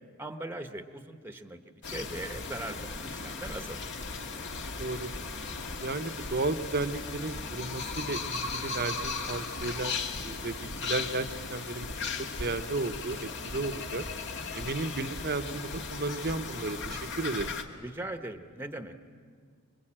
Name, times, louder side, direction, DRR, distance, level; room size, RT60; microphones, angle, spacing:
voice 1, 0.2-3.8 17.8-18.9, right 1 dB, 10° right, 8 dB, 1.0 m, -40 dB
sound 1, 1.8-17.6, left 4 dB, 55° left, 1.7 m, -37 dB
voice 2, 4.8-5.1 5.8-9.9 10.2-11.9 12.4-14.0 14.5-17.5, right 3 dB, 45° right, 11 dB, 0.9 m, -34 dB
25.5 x 22.5 x 8.8 m, 2.1 s
head